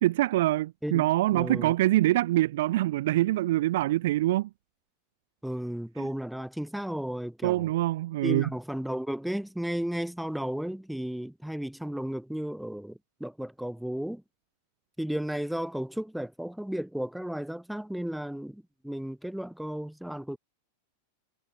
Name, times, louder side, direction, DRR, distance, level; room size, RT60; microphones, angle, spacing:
voice 1, 0.0-4.5 6.0-6.1 7.4-8.5, right 16 dB, 55° right, 0.4 m, -25 dB
voice 2, 0.8-1.7 5.4-7.7 8.2-14.2 15.0-20.4, equal, ahead, 1.4 m, -34 dB
figure-of-eight pair, 90°, 0 cm